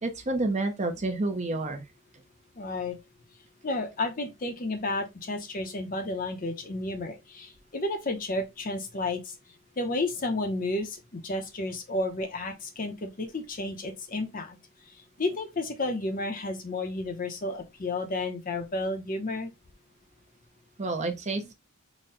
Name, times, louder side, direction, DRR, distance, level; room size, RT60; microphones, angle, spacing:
voice 1, 0.0-1.8 20.8-21.5, right 2 dB, 30° right, 0.7 m, -29 dB
voice 2, 2.6-3.0 3.6-9.3 9.8-14.6 15.2-19.5, left 2 dB, 40° left, 0.7 m, -32 dB
4.1 x 2.2 x 3.8 m
head